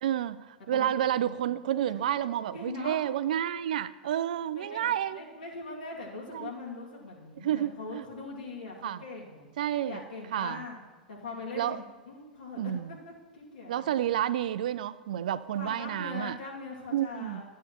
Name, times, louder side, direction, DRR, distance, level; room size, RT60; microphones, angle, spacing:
voice 1, 0.0-5.2 6.3-6.5 7.4-8.0 8.8-9.0 9.6-10.0 10.3-10.6 11.5-11.8 12.6-13.0 13.7-16.4 16.9-17.4, right 11 dB, 65° right, 16 dB, 0.3 m, -30 dB
voice 2, 2.5-3.0 4.5-9.5 9.9-10.8 11.1-12.6 12.9-13.9 15.6-17.4, left 3 dB, 70° left, -3 dB, 2.4 m, -41 dB
12.0 x 9.0 x 3.0 m, 1.3 s
figure-of-eight pair, 95°, 5 cm